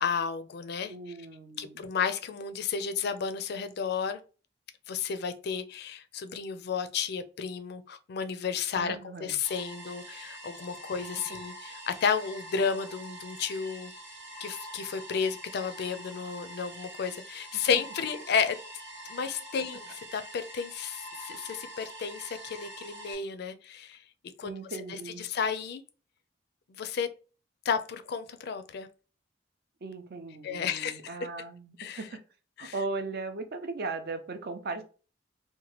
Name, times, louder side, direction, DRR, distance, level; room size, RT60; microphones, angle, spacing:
voice 1, 0.0-0.9 1.6-4.2 4.9-13.9 14.4-18.6 19.1-24.0 24.4-24.5 24.9-25.8 26.7-27.1 27.6-28.9 30.4-31.0 31.8-32.1 32.6-32.7, left 6 dB, 60° left, 0.4 m, -32 dB
voice 2, 0.9-1.8 8.8-9.4 17.5-17.6 24.4-25.2 29.8-32.2 32.6-34.8, right 3 dB, 55° right, 0.5 m, -38 dB
sound 1, 9.4-23.1, right 1 dB, 75° right, 1.1 m, -45 dB
2.9 x 2.2 x 3.0 m
head